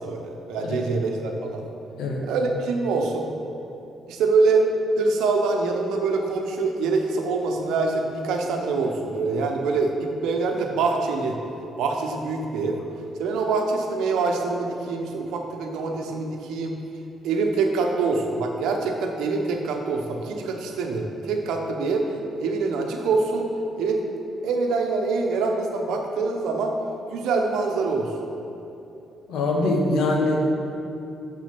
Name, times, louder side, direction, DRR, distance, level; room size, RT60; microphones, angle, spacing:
voice 1, 0.0-1.6 2.2-3.3 4.1-4.7 5.0-11.4 11.8-12.8 13.2-16.8 17.2-22.0 22.4-23.5 23.8-24.0 24.4-26.8 27.1-28.1, right 3 dB, 85° right, 2 dB, 0.9 m, -25 dB
voice 2, 29.3-30.4, left 2 dB, 85° left, 0 dB, 1.3 m, -23 dB
6.4 x 6.3 x 6.0 m, 2.9 s
cardioid pair, 90°, 0 cm